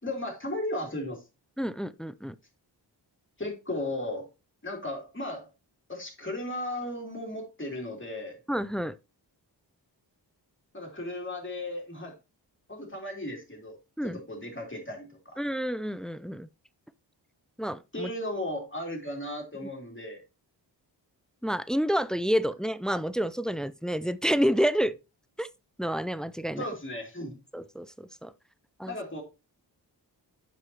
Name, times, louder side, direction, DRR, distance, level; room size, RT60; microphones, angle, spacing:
voice 1, 0.0-1.2 3.4-4.3 4.6-5.5 5.9-8.4 10.7-12.1 12.7-13.8 14.0-15.4 17.9-20.2 26.6-27.3 28.9-29.2, left 1 dB, 25° left, 3.1 m, -35 dB
voice 2, 1.6-2.4 8.5-8.9 14.0-14.2 15.4-16.5 17.6-18.1 21.4-25.0 25.4-25.5 25.8-26.6 27.5-28.3 28.8-28.9, equal, ahead, 0.4 m, -29 dB
8.3 x 5.4 x 2.9 m
cardioid pair, 45°, 45 cm